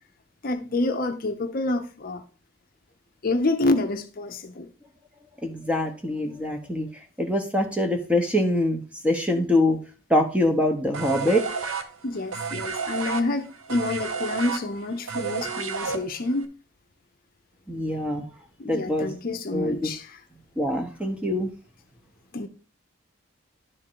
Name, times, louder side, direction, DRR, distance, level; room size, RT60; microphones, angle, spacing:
voice 1, 0.4-2.2 3.2-4.7 12.0-16.5 18.6-20.2 22.3-22.5, left 2 dB, 45° left, 0.6 m, -28 dB
voice 2, 5.4-6.9 7.2-9.8 10.1-11.4 17.7-18.2 18.6-19.1 19.5-19.9 20.6-21.5, left 1 dB, 5° right, 0.9 m, -24 dB
sound 1, 10.9-16.4, right 5 dB, 85° right, 0.9 m, -31 dB
11.0 x 3.7 x 4.5 m
head